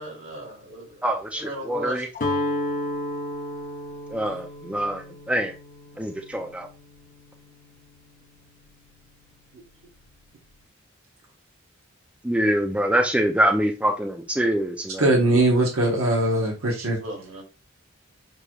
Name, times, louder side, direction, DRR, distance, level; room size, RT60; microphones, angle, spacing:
voice 1, 0.0-1.1 1.4-2.1 17.0-17.4, right 1 dB, 65° right, 2.5 m, -36 dB
voice 2, 1.0-2.1 4.1-5.0 5.3-5.5 6.0-6.7 12.2-15.0, right 1 dB, 5° right, 0.4 m, -24 dB
Guitar, 2.1-8.2, left 1 dB, 40° left, 0.7 m, -33 dB
voice 3, 15.0-17.0, right 2 dB, 85° right, 1.0 m, -20 dB
6.7 x 3.0 x 2.3 m
head